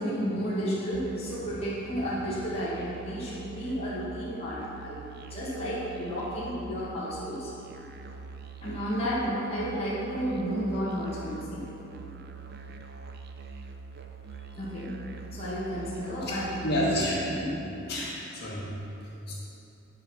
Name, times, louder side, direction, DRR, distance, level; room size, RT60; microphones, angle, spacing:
voice 1, 0.0-7.5 8.6-11.7 14.6-16.9 17.2-17.7, equal, 30° left, -10 dB, 1.6 m, -32 dB
Musical instrument, 0.9-17.4, right 5 dB, 50° right, 0.5 m, -44 dB
voice 2, 16.6-17.3 17.9-18.7 19.3-19.4, equal, 50° left, -7 dB, 1.7 m, -29 dB
10.0 x 4.6 x 5.7 m, 2.9 s
head